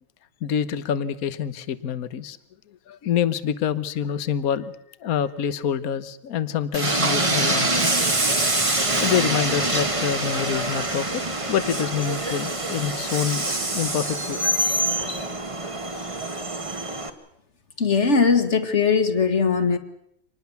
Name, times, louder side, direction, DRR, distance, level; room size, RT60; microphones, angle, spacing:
voice 1, 0.4-2.4 2.9-4.7 5.0-7.9 9.0-11.2 11.5-14.4, left 8 dB, 50° left, 15 dB, 1.4 m, -26 dB
Train, 6.7-17.1, right 2 dB, 15° right, 1.5 m, -25 dB
voice 2, 17.8-19.8, left 5 dB, 35° left, 9 dB, 2.0 m, -20 dB
26.0 x 20.0 x 7.1 m, 0.74 s
omnidirectional pair, 2.2 m